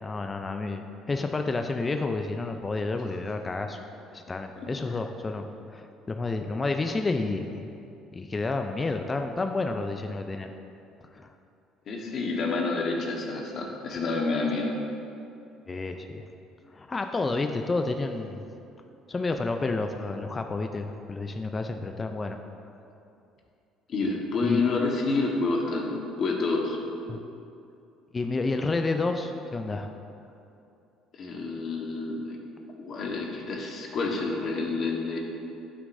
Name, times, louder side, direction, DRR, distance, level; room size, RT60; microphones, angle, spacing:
voice 1, 0.0-3.8 4.1-7.7 8.1-10.5 11.1-11.3 15.7-16.2 16.7-18.4 19.1-22.4 24.4-24.6 27.1-27.2 28.1-29.9, left 3 dB, 25° left, 5 dB, 0.5 m, -30 dB
voice 2, 11.9-14.7 23.9-26.8 31.1-32.4 32.8-35.2, left 3 dB, 55° left, 0 dB, 1.3 m, -28 dB
11.0 x 6.3 x 2.7 m, 2.6 s
supercardioid pair, 85°, 0 cm